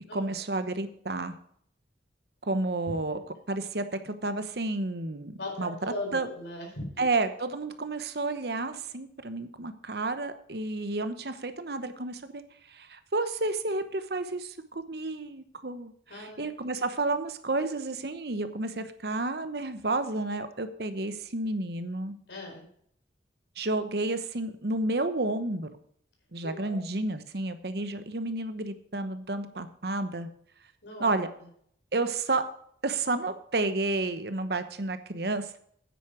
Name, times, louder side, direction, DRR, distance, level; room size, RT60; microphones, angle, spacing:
voice 1, 0.1-1.4 2.4-3.2 3.5-5.7 6.1-6.3 7.0-12.4 12.7-22.2 23.6-25.7 26.3-30.3 31.0-31.3 31.9-32.4 32.8-35.5, right 2 dB, 60° right, 10 dB, 1.0 m, -31 dB
voice 2, 5.4-7.0 16.1-16.4 22.3-22.7 26.4-26.8 30.8-31.1, left 1 dB, 80° left, 0 dB, 4.6 m, -38 dB
9.3 x 9.2 x 5.0 m, 0.66 s
head